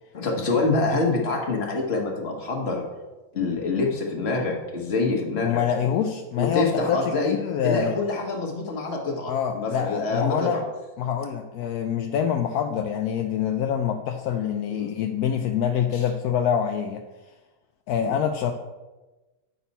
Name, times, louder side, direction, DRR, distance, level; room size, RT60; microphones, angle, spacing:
voice 1, 0.1-2.8 3.3-5.6 6.4-7.3 7.6-10.6 14.7-14.9 15.9-16.0 18.0-18.1, left 3 dB, 35° left, 0 dB, 1.5 m, -26 dB
voice 2, 5.4-8.0 9.3-10.6 11.0-17.0 17.9-18.5, left 8 dB, 75° left, 4 dB, 0.9 m, -25 dB
9.0 x 6.0 x 4.2 m, 1.1 s
omnidirectional pair, 2.0 m